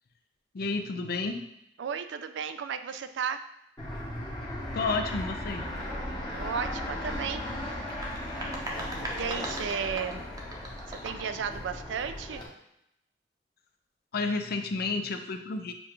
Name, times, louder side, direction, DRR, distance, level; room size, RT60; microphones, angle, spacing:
voice 1, 0.5-1.4 4.7-5.7 14.1-15.7, left 3 dB, 55° left, 7 dB, 0.5 m, -31 dB
voice 2, 1.8-3.4 6.3-7.4 8.3-8.8 9.1-10.2 10.9-12.4, right 7 dB, 75° right, 10 dB, 0.4 m, -34 dB
Fixed-wing aircraft airplane, 3.8-12.5, left 1 dB, 25° left, 0.9 m, -36 dB
sound 1, 7.9-11.4, right 1 dB, 20° right, 0.7 m, -39 dB
6.9 x 2.4 x 3.0 m, 0.80 s
head